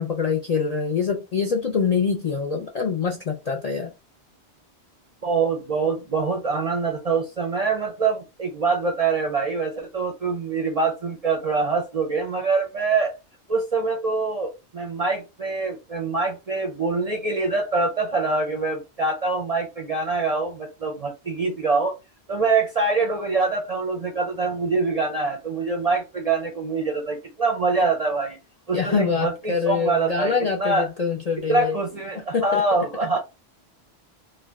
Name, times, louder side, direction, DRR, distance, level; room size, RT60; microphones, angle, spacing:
voice 1, 0.0-3.9 28.7-31.8 32.1-32.6, left 5 dB, 55° left, 0.4 m, -25 dB
voice 2, 5.2-13.1 13.5-21.9 22.3-28.4 28.7-30.9 31.5-33.2, right 4 dB, 45° right, 0.5 m, -24 dB
2.5 x 2.1 x 3.4 m
omnidirectional pair, 1.2 m